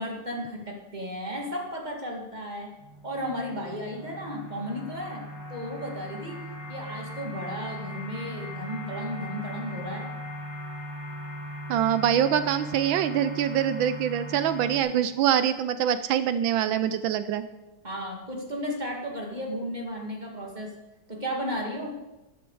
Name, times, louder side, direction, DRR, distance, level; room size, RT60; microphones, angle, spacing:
voice 1, 0.0-2.7 3.0-6.4 6.7-10.1 17.8-20.8 21.1-22.0, equal, 20° right, 0 dB, 2.0 m, -34 dB
sound 1, 2.8-14.8, equal, 35° left, 2.8 m, -39 dB
voice 2, 11.7-17.4, right 9 dB, 80° right, 12 dB, 1.3 m, -24 dB
13.5 x 10.5 x 4.7 m, 1.0 s
omnidirectional pair, 2.2 m